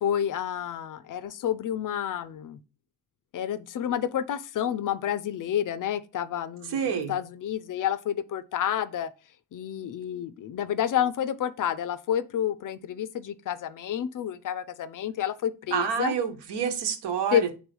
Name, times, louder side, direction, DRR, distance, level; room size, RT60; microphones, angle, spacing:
voice 1, 0.0-2.6 3.3-9.1 9.5-16.1 17.3-17.5, left 10 dB, 50° left, 0.5 m, -29 dB
voice 2, 6.7-7.1 15.7-17.5, right 7 dB, 75° right, 1.3 m, -28 dB
4.8 x 3.7 x 5.3 m
cardioid pair, 145°, 42 cm